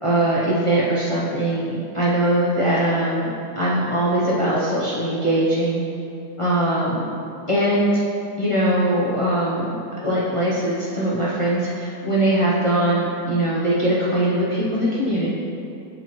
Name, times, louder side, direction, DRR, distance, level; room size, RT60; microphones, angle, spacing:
voice 1, 0.0-3.3 3.6-5.8 6.4-7.0 7.5-8.0 8.4-9.8 10.0-15.3, right 1 dB, 55° left, -8 dB, 0.3 m, -21 dB
7.9 x 4.3 x 3.0 m, 2.7 s
omnidirectional pair, 1.8 m